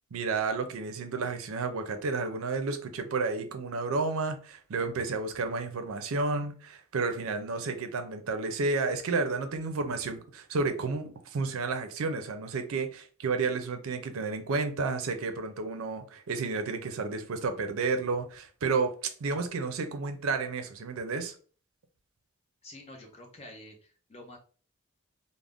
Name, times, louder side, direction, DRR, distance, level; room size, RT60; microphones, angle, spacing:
voice 1, 0.1-18.9 19.2-21.3, right 4 dB, 75° right, 0.5 m, -31 dB
voice 2, 22.6-24.4, left 1 dB, 30° left, 0.7 m, -48 dB
2.5 x 2.0 x 3.4 m
head